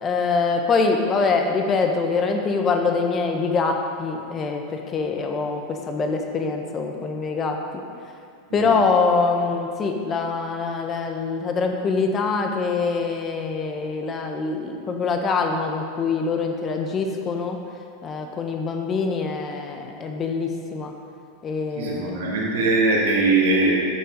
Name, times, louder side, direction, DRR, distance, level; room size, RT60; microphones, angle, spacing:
voice 1, 0.0-7.6 8.5-17.6 18.0-20.9 21.4-22.2, left 4 dB, 30° left, 3 dB, 1.3 m, -24 dB
voice 2, 21.7-23.8, right 3 dB, 80° right, -4 dB, 2.3 m, -21 dB
11.0 x 6.6 x 5.3 m, 2.4 s
hypercardioid pair, 110°, 0 cm